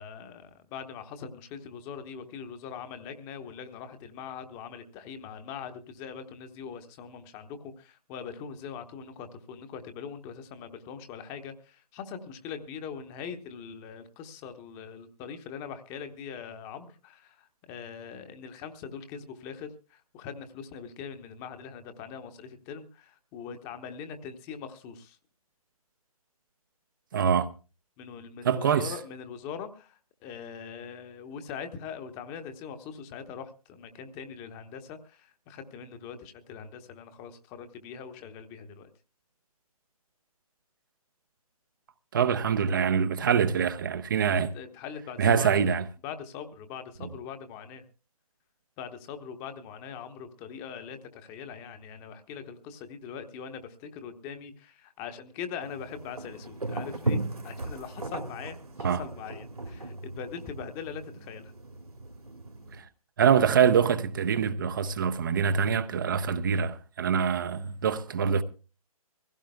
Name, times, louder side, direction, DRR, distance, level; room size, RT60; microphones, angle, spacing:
voice 1, 0.0-25.2 28.0-38.9 44.5-45.7 46.0-47.8 48.8-58.6 59.0-61.5, left 7 dB, 15° left, 1.0 m, -42 dB
voice 2, 27.1-27.5 28.4-28.9 42.1-44.5 45.2-45.8 58.8-59.0 62.8-62.9 63.2-68.4, right 7 dB, 35° right, 0.6 m, -24 dB
sound 1, 55.6-62.8, right 2 dB, 75° right, 2.5 m, -36 dB
23.5 x 16.0 x 2.2 m
figure-of-eight pair, 135°, 19 cm